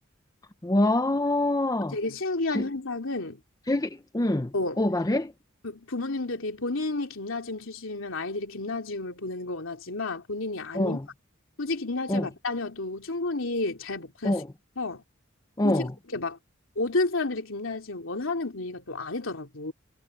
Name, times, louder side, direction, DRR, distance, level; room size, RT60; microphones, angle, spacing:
voice 1, 0.6-2.0 2.5-2.7 3.7-5.3 10.7-11.0 12.1-12.3 14.2-14.5 15.6-15.9, left 1 dB, 20° left, 0.7 m, -25 dB
voice 2, 1.9-3.4 4.5-4.8 5.6-11.0 11.6-14.4 14.8-15.0 15.6-16.4 16.7-19.7, left 2 dB, 75° left, 3.1 m, -31 dB
head